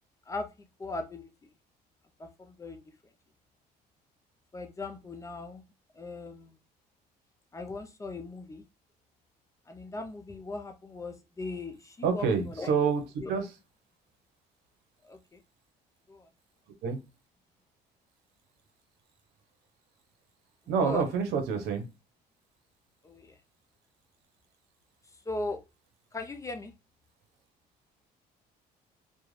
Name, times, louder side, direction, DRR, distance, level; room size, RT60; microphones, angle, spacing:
voice 1, 0.8-1.3 2.2-2.8 4.5-5.6 5.9-6.6 7.5-8.6 9.7-12.9 13.2-13.3 15.0-15.4 16.1-16.3 20.8-21.1 23.0-23.4 25.3-25.6 26.1-26.7, left 3 dB, 20° left, 6 dB, 0.4 m, -39 dB
voice 2, 12.0-13.5 16.8-17.0 20.7-21.9, right 6 dB, 85° right, 6 dB, 0.7 m, -27 dB
2.4 x 2.2 x 3.1 m, 0.26 s
cardioid pair, 110°, 17 cm